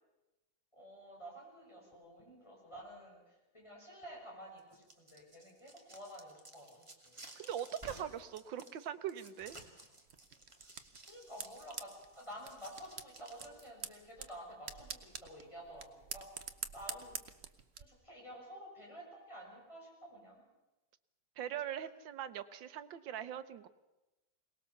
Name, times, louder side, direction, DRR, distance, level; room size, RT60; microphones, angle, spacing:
voice 1, 0.7-7.3 10.6-10.7 11.0-17.2 17.8-20.4, equal, 15° left, -3 dB, 6.6 m, -51 dB
sound 1, 4.6-13.9, right 2 dB, 15° right, 2.1 m, -55 dB
voice 2, 7.4-9.6 21.4-23.7, right 10 dB, 85° right, 12 dB, 1.7 m, -41 dB
sound 2, 10.1-17.8, right 6 dB, 45° right, 1.0 m, -48 dB
23.0 x 19.0 x 7.1 m, 1.0 s
omnidirectional pair, 2.0 m